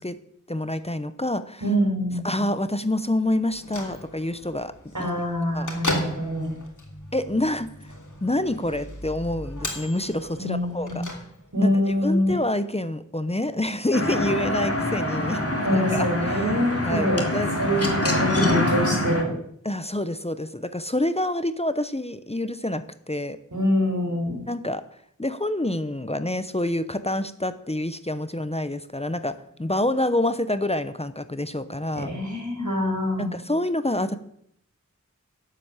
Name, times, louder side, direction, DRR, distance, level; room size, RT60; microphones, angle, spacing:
voice 1, 0.5-1.6 2.2-4.7 5.0-5.1 5.5-5.7 7.1-7.9 8.2-11.0 11.6-15.4 15.7-16.5 16.8-17.5 19.6-23.4 24.5-24.8 25.2-32.1 33.2-34.2, left 1 dB, 20° left, 12 dB, 0.8 m, -27 dB
voice 2, 1.6-2.3 4.9-6.6 10.4-11.0 11.5-12.3 15.6-17.2 17.6-19.3 23.5-24.4 31.9-33.4, equal, 75° right, 1 dB, 5.0 m, -25 dB
Bell / Microwave oven, 3.4-11.7, left 1 dB, 85° left, 2.9 m, -36 dB
sound 1, 13.9-19.2, left 1 dB, 50° left, 2.7 m, -25 dB
12.0 x 8.2 x 8.8 m, 0.70 s
wide cardioid pair, 50°, 30 cm